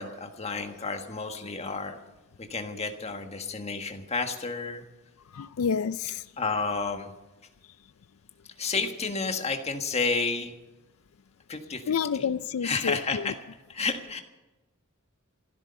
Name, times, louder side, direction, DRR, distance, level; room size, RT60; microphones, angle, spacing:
voice 1, 0.0-2.0 2.4-4.8 6.4-7.1 8.6-10.5 11.5-12.3 12.6-13.4 13.7-14.2, left 4 dB, 30° left, 1.5 m, -31 dB
voice 2, 5.3-6.2 11.9-13.3, left 6 dB, 85° left, 0.4 m, -29 dB
15.5 x 13.0 x 6.9 m
head